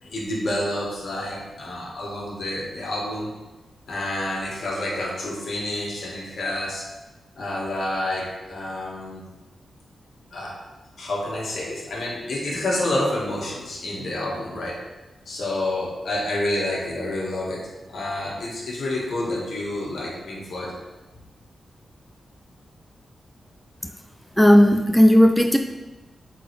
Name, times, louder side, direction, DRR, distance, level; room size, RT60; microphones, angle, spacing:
voice 1, 0.0-3.3 3.9-6.9 7.4-9.2 10.3-10.6 11.0-14.8 15.2-20.7, left 1 dB, 70° left, -3 dB, 1.7 m, -28 dB
voice 2, 24.4-25.6, equal, ahead, 4 dB, 0.4 m, -14 dB
7.5 x 3.9 x 3.4 m, 1.1 s
wide cardioid pair, 105°, 0 cm